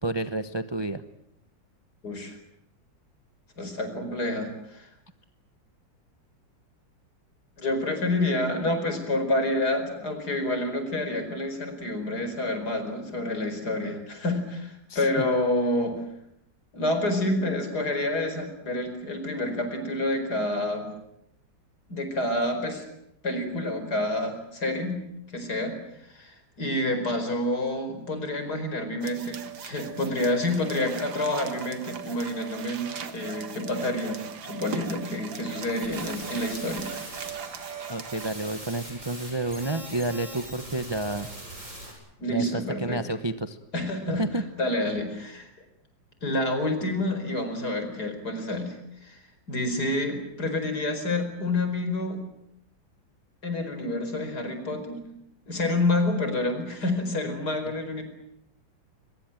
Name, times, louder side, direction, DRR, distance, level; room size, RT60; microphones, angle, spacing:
voice 1, 0.0-1.0 14.9-15.3 37.9-41.3 42.3-43.6 44.1-44.4, right 2 dB, 20° right, 10 dB, 0.7 m, -30 dB
voice 2, 2.0-2.4 3.6-4.9 7.6-16.0 16.7-20.9 21.9-22.8 23.2-25.0 25.3-25.8 26.1-36.9 42.2-43.0 43.7-44.3 44.6-45.5 46.2-48.8 49.0-49.2 49.5-52.2 53.4-55.0 55.5-58.0, left 1 dB, 55° left, 7 dB, 5.3 m, -28 dB
sound 1, 29.0-38.3, right 7 dB, 90° right, 2.3 m, -39 dB
sound 2, 35.7-41.9, right 1 dB, 40° right, 8.1 m, -42 dB
23.5 x 22.0 x 9.1 m, 0.80 s
omnidirectional pair, 2.0 m